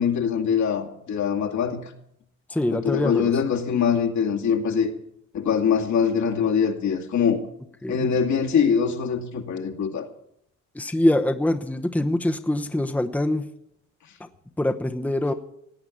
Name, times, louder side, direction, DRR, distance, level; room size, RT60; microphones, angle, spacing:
voice 1, 0.0-1.9 2.7-4.9 5.3-7.4 7.9-10.1, left 7 dB, 70° left, 2.5 m, -23 dB
voice 2, 2.5-3.3 7.8-8.1 10.7-13.5 14.2-14.3 14.6-15.3, left 1 dB, 5° left, 0.9 m, -24 dB
17.5 x 8.9 x 8.5 m
cardioid pair, 90°, 30 cm